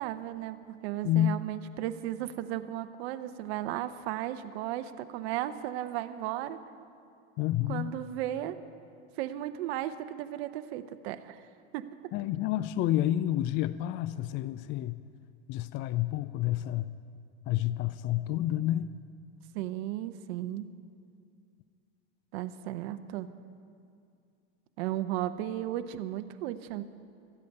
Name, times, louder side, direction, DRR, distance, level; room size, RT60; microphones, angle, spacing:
voice 1, 0.0-6.6 7.7-8.6 9.2-11.4 11.7-11.9 19.5-20.7 22.3-23.3 24.8-26.8, right 13 dB, 65° right, 10 dB, 0.8 m, -35 dB
voice 2, 1.0-1.4 7.4-7.9 12.1-15.0 15.5-16.9 17.5-19.0, left 13 dB, 35° left, 14 dB, 0.4 m, -29 dB
13.5 x 8.4 x 9.4 m, 2.4 s
supercardioid pair, 125°, 33 cm